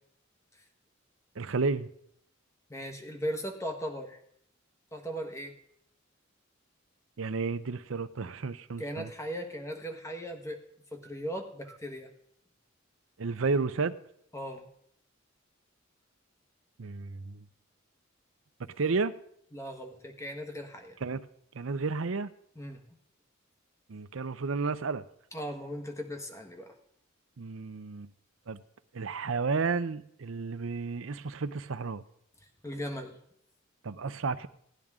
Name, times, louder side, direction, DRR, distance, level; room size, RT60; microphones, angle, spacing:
voice 1, 1.4-1.9 7.2-9.1 13.2-13.9 16.8-17.4 18.8-19.1 21.0-21.3 21.5-22.3 23.9-25.0 27.4-28.1 28.5-28.6 28.9-32.0 33.8-34.5, right 4 dB, 70° right, 13 dB, 0.6 m, -32 dB
voice 2, 2.7-4.2 4.9-5.5 8.8-10.6 10.9-12.1 14.3-14.7 19.5-21.0 22.5-22.8 25.3-26.8 32.6-33.2, equal, 15° left, 5 dB, 1.3 m, -38 dB
17.0 x 10.5 x 3.7 m, 0.71 s
head